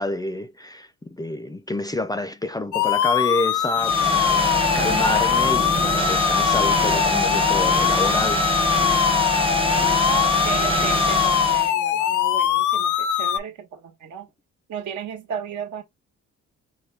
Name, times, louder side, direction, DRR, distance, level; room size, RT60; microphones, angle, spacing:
voice 1, 0.0-4.5 4.7-8.4, left 1 dB, 15° left, 0.4 m, -28 dB
sound 1, 2.7-13.4, left 11 dB, 80° left, 0.6 m, -22 dB
sound 2, 3.8-11.7, right 2 dB, 20° right, 0.7 m, -24 dB
voice 2, 10.0-14.3 14.7-15.8, right 7 dB, 75° right, 1.2 m, -34 dB
4.7 x 2.2 x 3.2 m
cardioid pair, 90°, 30 cm